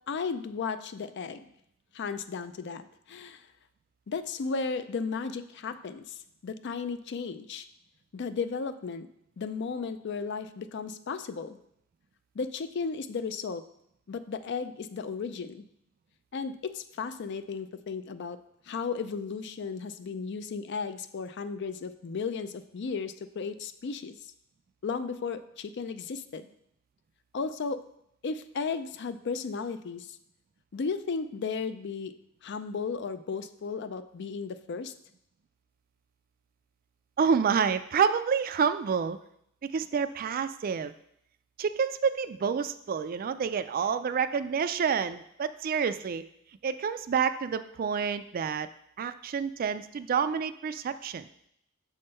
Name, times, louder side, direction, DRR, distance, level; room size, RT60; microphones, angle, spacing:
voice 1, 0.1-1.5 1.9-3.4 4.1-7.7 8.1-9.1 9.4-11.6 12.4-13.6 14.1-15.6 16.3-18.4 18.7-24.2 24.8-26.5 27.3-27.8 28.2-30.2 30.7-32.2 32.4-34.9, left 5 dB, 55° left, 11 dB, 0.4 m, -34 dB
voice 2, 37.2-39.2 39.6-40.9 41.6-46.2 46.6-48.7 49.0-51.3, right 6 dB, 45° right, 12 dB, 0.3 m, -28 dB
6.7 x 3.6 x 5.4 m, 0.73 s
head